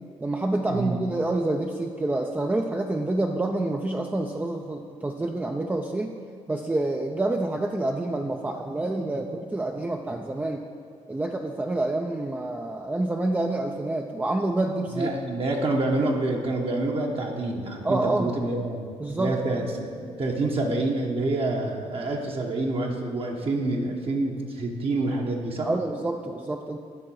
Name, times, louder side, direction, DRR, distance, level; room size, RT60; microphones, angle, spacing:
voice 1, 0.2-6.1 6.5-10.6 11.1-15.1 17.8-18.3 19.0-19.4 25.6-26.8, right 2 dB, 10° right, 3 dB, 0.4 m, -27 dB
voice 2, 14.9-18.9 19.2-25.7, right 2 dB, 45° right, 0 dB, 1.0 m, -27 dB
8.9 x 3.7 x 6.2 m, 2.1 s
supercardioid pair, 75°, 13 cm